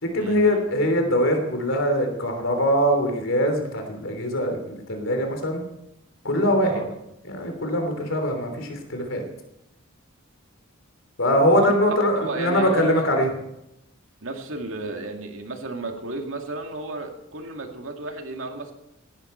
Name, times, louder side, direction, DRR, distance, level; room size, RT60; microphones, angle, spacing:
voice 1, 0.0-5.6 6.2-6.8 7.3-9.2 11.2-13.3, equal, 70° left, 4 dB, 3.2 m, -22 dB
voice 2, 12.2-13.2 14.2-18.7, right 3 dB, 75° right, 3 dB, 2.3 m, -33 dB
18.0 x 12.0 x 4.5 m, 0.85 s
head